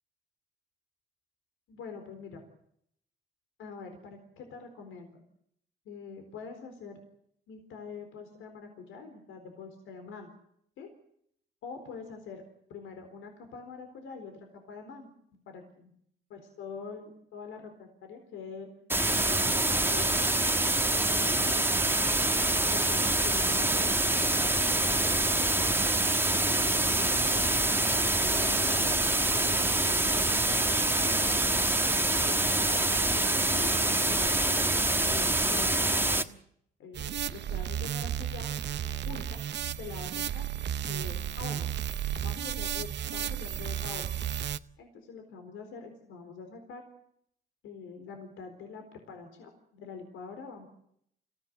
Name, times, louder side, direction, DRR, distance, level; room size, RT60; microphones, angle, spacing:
voice 1, 1.7-2.4 3.6-5.2 5.9-7.0 7.5-10.3 10.8-10.9 11.6-12.4 12.7-14.3 14.7-15.1 15.5-15.9 16.3-18.7 19.3-20.3 20.9-21.7 22.7-25.6 26.3-30.7 31.0-31.5 32.2-32.8 33.5-34.7 35.0-36.3 36.8-40.5 40.9-41.7 42.2-44.0 44.4-46.8 47.6-50.7, left 5 dB, 85° left, 5 dB, 4.2 m, -45 dB
sound 1, 18.9-36.2, right 2 dB, 10° right, 1.4 m, -26 dB
sound 2, 36.9-44.6, right 10 dB, 60° right, 0.9 m, -33 dB
26.0 x 16.0 x 8.2 m, 0.71 s
cardioid pair, 90°, 20 cm